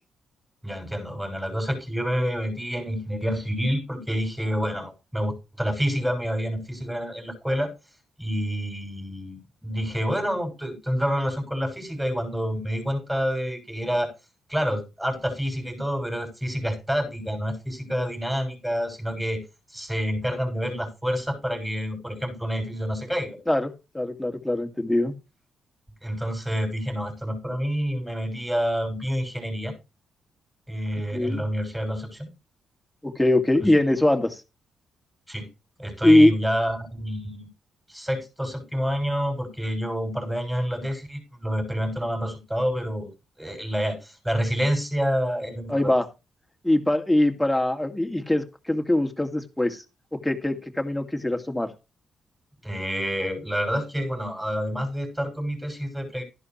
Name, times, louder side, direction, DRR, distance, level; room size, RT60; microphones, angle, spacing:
voice 1, 0.6-7.7 8.2-14.1 14.5-19.4 19.7-23.4 26.0-29.7 30.7-32.3 33.6-33.7 35.3-35.5 35.8-37.5 37.9-43.1 43.4-45.9 52.6-56.2, equal, 10° right, 6.7 m, -28 dB
voice 2, 23.5-25.1 31.1-31.5 33.0-34.4 36.0-36.3 45.7-46.1 46.6-49.8 50.1-51.7, left 1 dB, 10° left, 2.4 m, -22 dB
13.0 x 11.0 x 3.2 m
hypercardioid pair, 40°, 0 cm